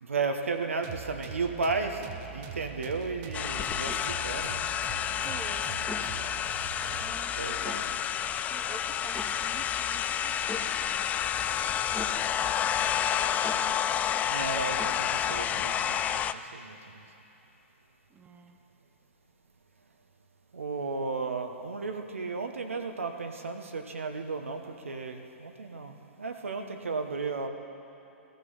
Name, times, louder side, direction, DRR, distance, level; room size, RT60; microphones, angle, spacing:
voice 1, 0.0-4.6 7.3-7.9 12.3-13.7 14.3-17.0 20.5-27.5, right 4 dB, 80° right, 5 dB, 1.2 m, -34 dB
sound 1, 0.8-7.5, right 9 dB, 40° right, 1.0 m, -43 dB
sound 2, 3.3-16.3, left 9 dB, 20° left, 0.4 m, -30 dB
sound 3, 3.9-4.0 5.8-6.1 7.7-7.8 9.2-9.4 10.5-10.7 11.9-12.2 13.4-13.7 14.8-15.0, left 2 dB, 5° left, 1.8 m, -39 dB
voice 2, 5.0-5.7 6.9-7.8 8.5-11.1 18.1-18.6, right 4 dB, 20° right, 4 dB, 1.2 m, -48 dB
16.0 x 14.0 x 5.6 m, 2.9 s
figure-of-eight pair, 110°, 7 cm